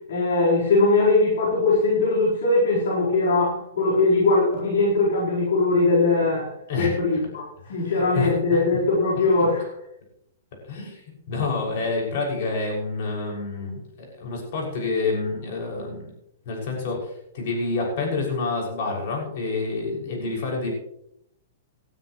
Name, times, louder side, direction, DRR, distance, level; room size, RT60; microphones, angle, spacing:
voice 1, 0.1-7.4 7.7-9.6, left 3 dB, 75° left, -5 dB, 4.5 m, -21 dB
voice 2, 6.7-7.2 7.6-8.6 9.2-9.3 10.7-11.0 11.3-16.1 16.4-20.7, left 3 dB, 55° left, -1 dB, 6.6 m, -28 dB
19.0 x 12.5 x 3.2 m, 0.75 s
hypercardioid pair, 160°, 0 cm